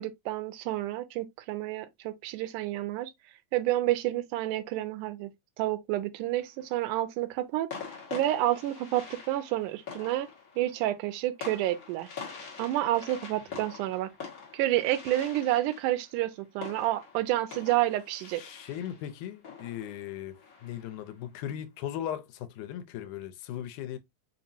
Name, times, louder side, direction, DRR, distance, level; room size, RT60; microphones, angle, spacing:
voice 1, 0.0-3.1 3.5-7.7 8.1-10.3 10.6-12.1 12.6-14.1 14.5-18.4, right 14 dB, 85° right, 2.1 m, -29 dB
sound 1, 6.2-6.8 7.7-21.1, left 6 dB, 55° left, 1.0 m, -45 dB
voice 2, 18.3-24.0, left 11 dB, 85° left, 2.1 m, -38 dB
5.3 x 2.8 x 2.5 m
omnidirectional pair, 3.5 m